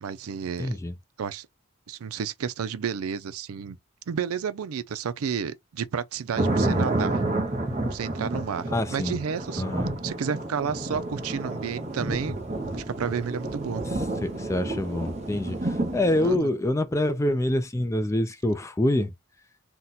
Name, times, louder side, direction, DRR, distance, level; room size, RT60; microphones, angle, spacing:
voice 1, 0.0-0.8 1.2-1.5 1.9-3.8 4.1-7.2 7.9-9.6 10.0-12.4 12.7-13.8 16.2-16.5, right 7 dB, 85° right, 0.4 m, -31 dB
voice 2, 0.6-1.0 6.6-6.8 8.7-9.2 9.6-9.9 13.8-19.1, left 1 dB, 15° left, 0.3 m, -26 dB
sound 1, 6.4-16.4, right 2 dB, 30° right, 0.7 m, -30 dB
2.8 x 2.1 x 3.9 m
head